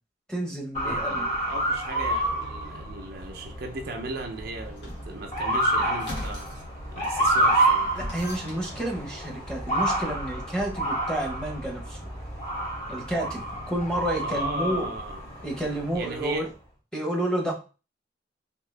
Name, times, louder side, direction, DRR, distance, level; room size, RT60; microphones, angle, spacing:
voice 1, 0.3-1.3 7.9-12.0 12.9-14.9 15.4-16.5 16.9-17.5, right 1 dB, 5° left, -1 dB, 1.0 m, -30 dB
Motor vehicle (road) / Siren, 0.7-16.3, right 1 dB, 40° left, 2.2 m, -29 dB
voice 2, 0.8-6.5 6.9-7.9 14.2-15.2 15.9-16.5, right 3 dB, 55° right, 4 dB, 0.6 m, -36 dB
sound 1, 4.6-5.1 6.0-6.6 7.0-8.7, left 1 dB, 75° left, 1.6 m, -39 dB
3.7 x 2.9 x 3.2 m, 0.33 s
head